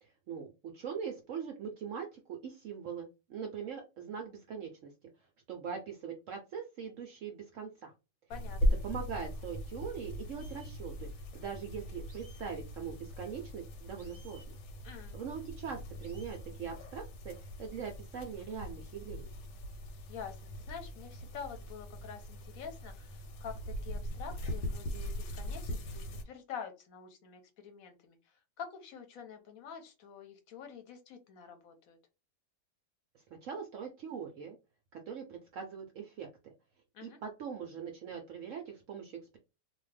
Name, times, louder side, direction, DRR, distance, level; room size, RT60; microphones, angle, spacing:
voice 1, 0.0-4.9 5.5-7.9 8.8-14.6 15.1-19.3 33.3-34.6 34.9-36.5 37.0-39.4, right 7 dB, 70° right, 3 dB, 0.7 m, -42 dB
sound 1, 8.3-26.2, equal, 90° left, 1.3 m, -39 dB
voice 2, 8.3-8.8 14.8-15.2 20.1-32.0 36.9-37.2, left 7 dB, 65° left, 6 dB, 1.0 m, -47 dB
FX - pajaro domestico, 10.4-10.7 12.1-12.5 14.0-14.5 16.0-16.4, equal, 20° left, 0.7 m, -60 dB
2.7 x 2.4 x 3.2 m, 0.28 s
omnidirectional pair, 1.9 m